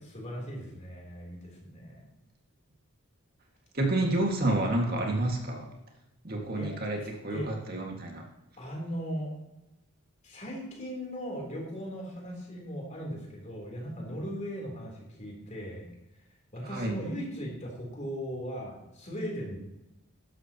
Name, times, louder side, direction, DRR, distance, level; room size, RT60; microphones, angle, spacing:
voice 1, 0.0-2.1 6.5-6.7 7.0-7.5 8.6-9.3 10.2-15.9 16.5-19.6, equal, 35° left, -1 dB, 3.5 m, -38 dB
voice 2, 3.7-5.7 6.2-8.2 16.7-17.0, right 2 dB, 45° right, 1 dB, 2.0 m, -29 dB
13.0 x 11.5 x 3.0 m, 0.96 s
head